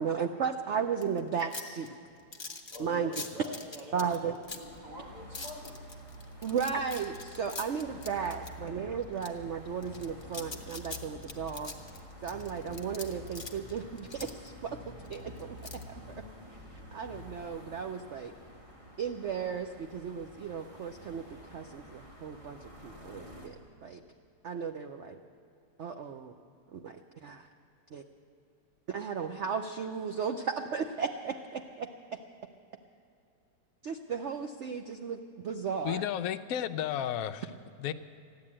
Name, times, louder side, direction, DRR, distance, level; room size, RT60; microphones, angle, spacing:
voice 1, 0.0-1.9 2.8-3.1 3.9-4.3 6.4-11.7 12.2-14.8 15.1-15.6 16.7-18.3 19.0-21.2 21.5-23.5 23.8-24.0 24.4-25.2 25.8-26.3 26.7-27.0 27.2-27.5 27.9-28.0 28.9-31.9 33.8-35.2 35.4-36.0, right 6 dB, 85° right, 6 dB, 0.6 m, -35 dB
sound 1, 1.0-4.8 5.3-8.7 9.2-9.3 9.8-14.5 15.0-15.8, left 3 dB, 30° left, 0.5 m, -43 dB
voice 2, 1.7-2.3 2.7-5.8 8.2-8.5, left 1 dB, 60° right, -2 dB, 3.0 m, -47 dB
sound 2, 4.4-23.5, equal, 20° right, 2.0 m, -51 dB
Bass guitar, 7.9-17.5, left 2 dB, 10° left, 0.9 m, -49 dB
voice 3, 35.8-37.5 37.8-37.9, left 10 dB, 75° left, 10 dB, 0.8 m, -32 dB
14.5 x 10.5 x 8.6 m, 2.4 s
omnidirectional pair, 2.0 m